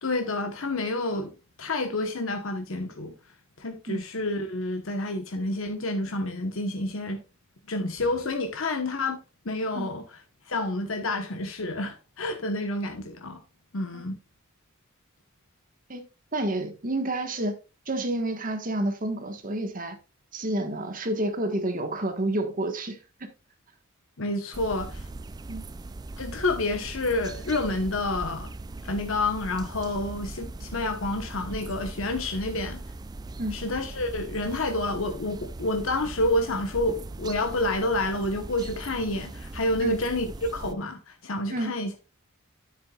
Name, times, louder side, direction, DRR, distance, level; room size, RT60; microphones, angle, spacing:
voice 1, 0.0-1.3 1.6-3.1 3.6-7.2 7.7-9.2 9.4-10.0 10.5-13.4 13.7-14.2 24.2-25.1 26.2-28.5 28.8-32.8 33.5-41.9, left 2 dB, 70° left, 1.1 m, -29 dB
voice 2, 16.3-17.5 17.9-20.0 20.3-23.3 25.5-25.6 33.4-33.5 39.8-40.0 41.5-41.8, right 1 dB, 40° right, 1.4 m, -29 dB
sound 1, 24.5-40.7, right 2 dB, 20° right, 0.3 m, -40 dB
9.6 x 8.2 x 2.4 m
head